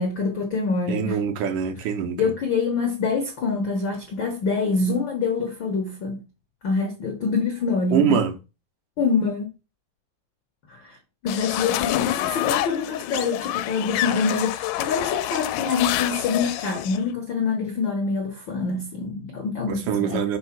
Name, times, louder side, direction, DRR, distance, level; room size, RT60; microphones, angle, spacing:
voice 1, 0.0-1.2 2.2-6.2 6.6-8.2 9.0-9.5 10.7-11.0 11.2-20.2, left 4 dB, 70° left, 1.1 m, -25 dB
voice 2, 0.9-2.3 7.9-8.4 19.7-20.4, right 8 dB, 75° right, 2.2 m, -24 dB
sound 1, 11.3-17.0, left 14 dB, 90° left, 2.2 m, -27 dB
5.4 x 4.0 x 5.8 m
omnidirectional pair, 3.8 m